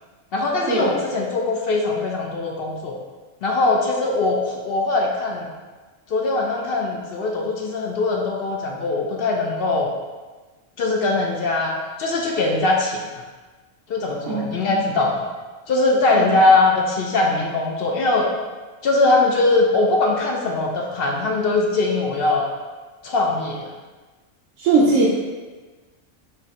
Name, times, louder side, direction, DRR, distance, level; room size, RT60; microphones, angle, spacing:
voice 1, 0.3-3.0 3.4-5.5 6.1-9.9 10.8-13.2 13.9-15.3 15.7-18.3 18.8-22.5 23.0-23.6, left 2 dB, 60° left, 0 dB, 0.7 m, -21 dB
voice 2, 24.6-25.2, right 3 dB, 85° right, -6 dB, 1.0 m, -19 dB
5.6 x 3.1 x 2.8 m, 1.3 s
omnidirectional pair, 1.3 m